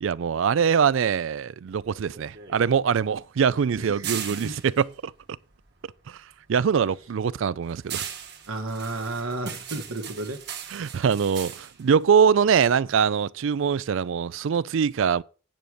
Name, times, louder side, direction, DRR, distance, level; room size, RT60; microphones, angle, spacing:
voice 1, 0.0-5.1 6.1-6.2 6.5-8.1 10.7-15.2, right 7 dB, 65° right, 0.4 m, -23 dB
sound 1, 1.7-6.2 6.5-13.0, right 9 dB, 50° right, 1.5 m, -39 dB
voice 2, 3.8-4.6 8.5-10.4, right 2 dB, 90° right, 1.8 m, -33 dB
9.1 x 6.4 x 5.1 m
head